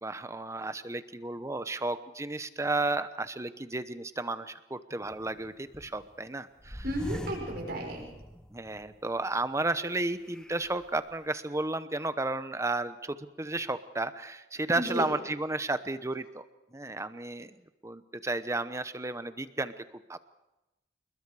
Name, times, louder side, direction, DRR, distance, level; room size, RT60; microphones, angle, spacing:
voice 1, 0.0-6.8 8.5-16.4 16.7-17.6 17.8-19.8 20.1-20.2, right 2 dB, 15° right, 12 dB, 0.9 m, -33 dB
sound 1, 5.0-6.2 6.6-9.0 9.4-9.5 10.2-11.0, equal, 5° left, 1.3 m, -42 dB
voice 2, 6.8-8.1 14.7-15.1, equal, 60° right, -1 dB, 6.7 m, -33 dB
28.0 x 21.5 x 4.9 m, 0.97 s
head